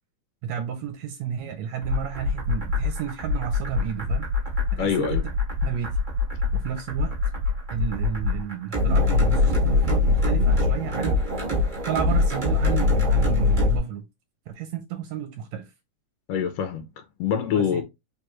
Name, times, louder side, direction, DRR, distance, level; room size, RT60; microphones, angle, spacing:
voice 1, 0.4-4.3 4.7-5.2 5.6-5.9 6.5-7.1 7.7-11.2 11.9-14.0 14.5-15.7 17.5-17.8, right 9 dB, 75° right, 1.8 m, -31 dB
sound 1, 1.8-13.8, left 3 dB, 40° right, 0.7 m, -23 dB
voice 2, 4.8-5.2 16.3-17.8, left 8 dB, 85° left, 1.4 m, -25 dB
4.7 x 3.4 x 3.0 m
omnidirectional pair, 3.6 m